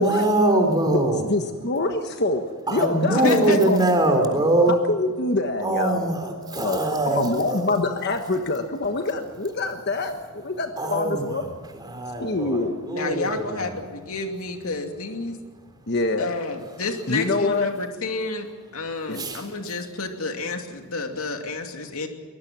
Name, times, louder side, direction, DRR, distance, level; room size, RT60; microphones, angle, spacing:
voice 1, 0.0-1.3 2.7-4.8 5.6-7.7 10.8-13.8 19.2-19.4, right 1 dB, 20° right, 5 dB, 3.8 m, -23 dB
voice 2, 1.3-3.3 3.7-3.8 4.9-6.1 6.5-6.8 7.2-11.4 12.2-12.7 15.9-16.3 17.1-17.7 19.1-19.2, left 2 dB, 50° left, 6 dB, 1.3 m, -25 dB
voice 3, 3.1-3.6 7.1-7.2 12.9-15.4 16.2-18.5 18.7-22.1, left 2 dB, 75° left, 4 dB, 2.6 m, -29 dB
24.0 x 19.5 x 7.5 m, 1.5 s
head